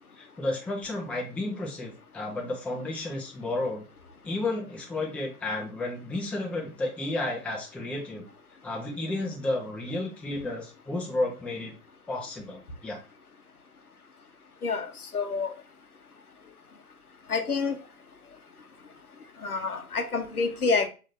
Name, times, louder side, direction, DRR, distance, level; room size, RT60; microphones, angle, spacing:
voice 1, 0.2-3.8 4.2-8.3 8.6-11.7 12.1-13.0, left 2 dB, 5° left, 0.6 m, -32 dB
voice 2, 14.6-15.5 17.3-17.8 19.4-20.9, left 4 dB, 90° left, 0.9 m, -28 dB
7.2 x 2.7 x 2.6 m
figure-of-eight pair, 110°, 43 cm